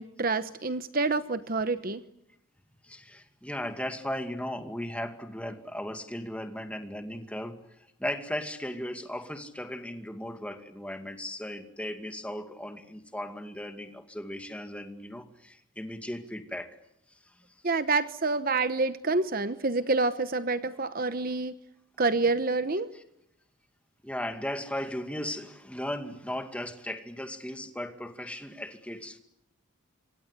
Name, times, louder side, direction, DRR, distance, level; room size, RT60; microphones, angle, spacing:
voice 1, 0.0-2.0 17.6-21.5 22.0-22.9, right 3 dB, 40° right, 12 dB, 1.0 m, -27 dB
voice 2, 2.8-7.6 8.0-16.8 17.2-17.5 22.9-23.0 24.0-29.2, left 1 dB, 5° left, 7 dB, 2.2 m, -37 dB
26.5 x 26.0 x 8.3 m, 0.79 s
head